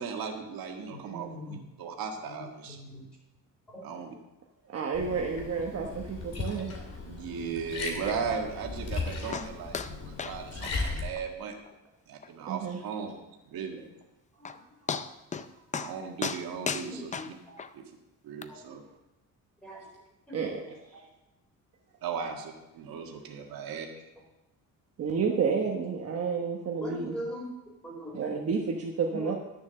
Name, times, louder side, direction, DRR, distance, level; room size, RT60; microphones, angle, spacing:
voice 1, 0.0-2.8 3.8-4.1 7.0-11.5 12.1-13.2 13.5-13.8 15.8-17.1 17.7-17.8 18.2-18.8 22.0-23.9, right 6 dB, 85° right, 2 dB, 1.7 m, -37 dB
voice 2, 0.9-1.6 2.2-3.1 3.7-3.9 13.8-13.9 14.4-14.5 16.6-17.2 18.5-18.6 19.6-19.8 20.3-20.4 20.6-21.0 23.6-23.7 26.8-27.5 27.8-28.4 29.1-29.4, equal, ahead, -5 dB, 5.1 m, -41 dB
voice 3, 4.7-6.7 12.5-12.8 20.3-20.6 25.0-27.1 28.1-29.4, right 5 dB, 45° right, 0 dB, 1.2 m, -30 dB
Liquid, 4.9-11.1, left 3 dB, 45° left, 2.5 m, -37 dB
sound 1, 9.3-9.5 9.7-9.9 10.2-10.4 10.6-10.7 11.2-11.3 11.7-11.8 12.2-12.3 14.0-14.1 14.5-14.6 14.9-15.5 15.7-15.9 16.2-17.7 18.4-18.5, left 5 dB, 20° left, 0.5 m, -34 dB
11.5 x 7.1 x 6.9 m, 0.98 s
cardioid pair, 155°, 34 cm